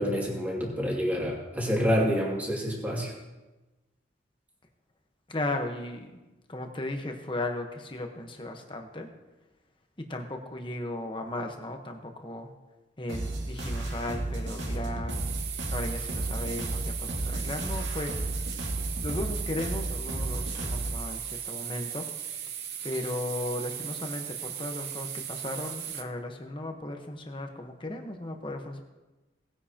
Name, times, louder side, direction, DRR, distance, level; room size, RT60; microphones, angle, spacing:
voice 1, 0.0-3.1, equal, 10° right, -3 dB, 2.5 m, -27 dB
voice 2, 5.3-6.2 6.5-9.1 10.1-12.5 13.0-15.2 15.7-18.3 19.0-22.1 22.8-28.8, left 1 dB, 25° left, 4 dB, 1.2 m, -36 dB
sound 1, 13.1-21.0, right 1 dB, 85° right, 2.2 m, -33 dB
sound 2, 15.1-26.0, right 9 dB, 60° right, 0.8 m, -37 dB
19.0 x 9.7 x 2.9 m, 1.1 s
head